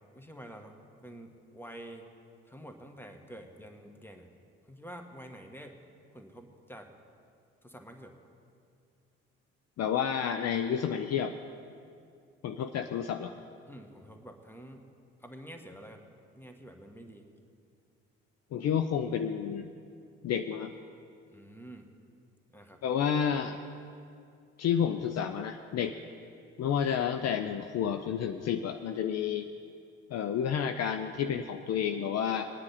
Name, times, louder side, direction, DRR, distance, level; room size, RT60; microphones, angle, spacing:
voice 1, 0.1-0.7 1.0-2.1 2.4-4.3 4.7-5.8 6.1-6.9 7.6-8.1 13.7-14.9 15.2-16.1 16.4-17.3 21.3-21.9 22.5-22.8, equal, 5° left, 5 dB, 1.5 m, -48 dB
voice 2, 9.8-11.4 12.4-13.3 18.5-19.7 20.2-20.7 22.8-23.6 24.6-25.9 26.6-29.5 30.1-32.5, left 8 dB, 45° left, 8 dB, 0.6 m, -30 dB
20.5 x 9.6 x 4.2 m, 2.3 s
hypercardioid pair, 50°, 35 cm